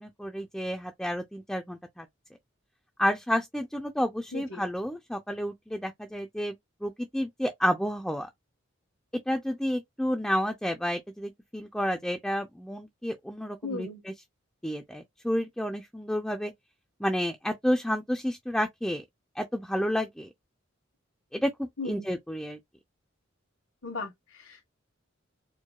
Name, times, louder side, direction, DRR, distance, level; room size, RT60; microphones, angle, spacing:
voice 1, 0.0-2.1 3.0-6.6 6.8-8.3 9.3-14.1 14.6-16.5 17.0-19.0 19.4-20.3 21.3-22.6, equal, 5° left, 0.3 m, -30 dB
voice 2, 4.3-4.6 13.6-14.0 21.8-22.0 23.8-24.6, left 3 dB, 75° left, 1.1 m, -37 dB
4.6 x 2.2 x 2.2 m
head